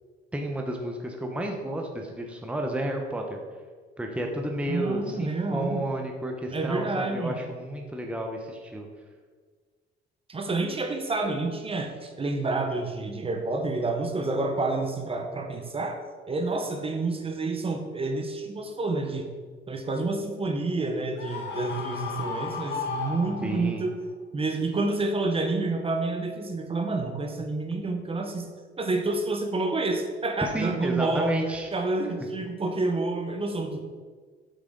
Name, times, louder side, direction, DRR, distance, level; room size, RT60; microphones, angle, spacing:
voice 1, 0.3-3.4 4.0-8.9 23.4-23.9 30.4-31.7, right 1 dB, 5° right, 2 dB, 0.9 m, -31 dB
voice 2, 4.7-5.8 6.5-7.3 10.3-16.0 16.3-19.3 19.7-24.0 24.3-28.5 28.8-31.4 31.7-33.8, right 3 dB, 30° right, 4 dB, 1.0 m, -29 dB
Screaming, 21.2-23.8, left 5 dB, 60° left, 1.4 m, -34 dB
8.1 x 6.2 x 3.8 m, 1.5 s
cardioid pair, 100°, 20 cm